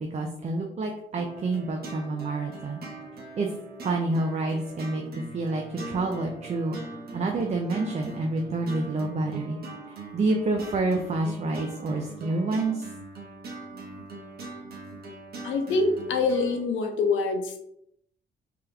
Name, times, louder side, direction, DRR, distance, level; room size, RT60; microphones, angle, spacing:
voice 1, 0.0-2.8 3.4-3.5 3.8-6.8 7.1-9.6 10.1-12.8, right 2 dB, 35° right, 2 dB, 0.5 m, -28 dB
sound 1, 1.2-16.6, right 2 dB, 50° right, 1.1 m, -41 dB
voice 2, 15.4-17.6, left 3 dB, 75° left, 4 dB, 0.8 m, -25 dB
3.6 x 2.9 x 3.4 m, 0.75 s
cardioid pair, 90°, 20 cm